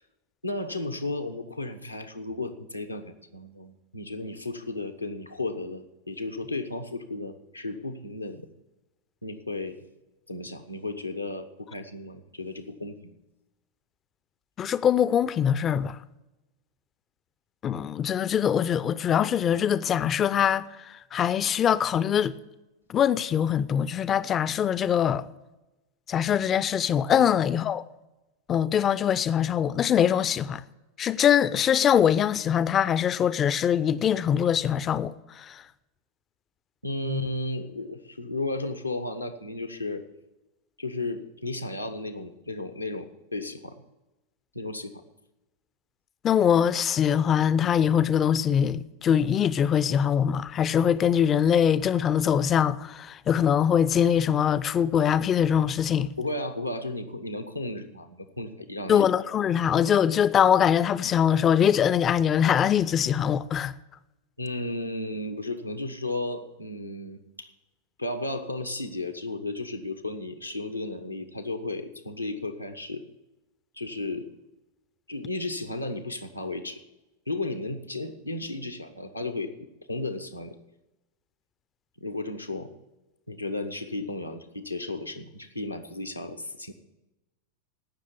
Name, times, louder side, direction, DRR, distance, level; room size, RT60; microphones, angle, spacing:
voice 1, 0.4-8.5 9.2-9.9 10.3-13.2 27.1-27.3 36.8-40.0 40.8-43.8 44.5-45.0 56.2-59.0 64.4-67.5 68.0-73.0 73.7-74.3 75.1-76.8 77.3-80.6 82.0-82.7 83.3-86.7, left 2 dB, 85° left, 1.1 m, -34 dB
voice 2, 14.6-16.0 17.6-22.4 22.9-25.3 26.1-27.8 28.5-30.6 31.0-35.6 37.1-37.3 46.2-56.1 58.9-63.8, left 8 dB, 25° left, 0.5 m, -23 dB
16.0 x 6.4 x 7.0 m
figure-of-eight pair, 90°, 0 cm